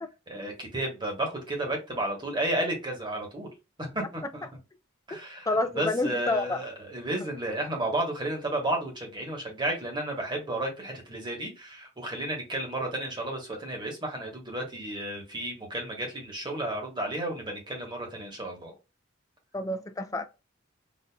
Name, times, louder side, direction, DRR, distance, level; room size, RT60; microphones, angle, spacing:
voice 1, 0.3-3.5 3.8-4.5 5.1-5.5 5.7-18.7, right 1 dB, 20° right, 1.2 m, -32 dB
voice 2, 5.5-6.6 19.5-20.2, left 2 dB, 15° left, 0.4 m, -28 dB
4.1 x 2.6 x 2.2 m
head